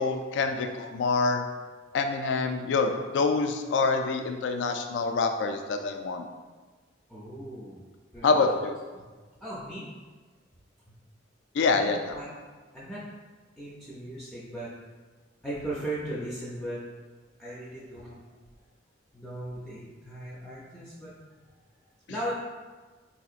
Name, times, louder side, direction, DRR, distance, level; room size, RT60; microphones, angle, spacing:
voice 1, 0.0-1.4 1.9-6.2 8.2-8.7 11.5-12.1, left 4 dB, 65° left, 6 dB, 0.3 m, -26 dB
voice 2, 7.1-7.8 8.1-8.4 8.9-9.1 9.4-9.9 11.6-12.3 12.7-13.0 13.6-14.7 15.4-16.8 17.4-18.2 19.1-21.1 22.1-22.3, right 1 dB, ahead, -9 dB, 0.4 m, -37 dB
3.9 x 2.7 x 2.4 m, 1.4 s
head